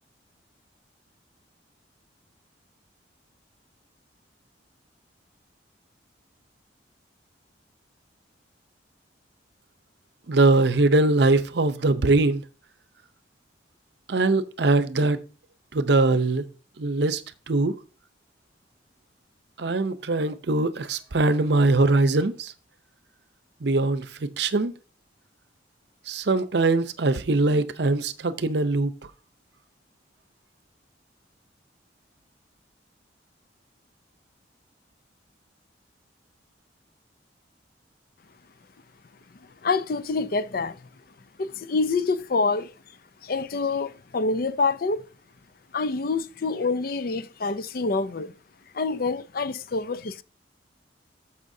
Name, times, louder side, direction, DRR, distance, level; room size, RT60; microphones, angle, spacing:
voice 1, 10.3-12.4 14.1-15.2 15.7-16.4 16.8-17.2 17.5-17.7 19.6-22.5 23.6-24.7 26.1-28.9, right 2 dB, 60° right, 0.7 m, -22 dB
voice 2, 39.6-40.9 41.4-42.7 43.2-45.1 45.7-48.3 48.7-50.2, left 4 dB, 50° left, 0.5 m, -26 dB
13.5 x 5.6 x 2.7 m
head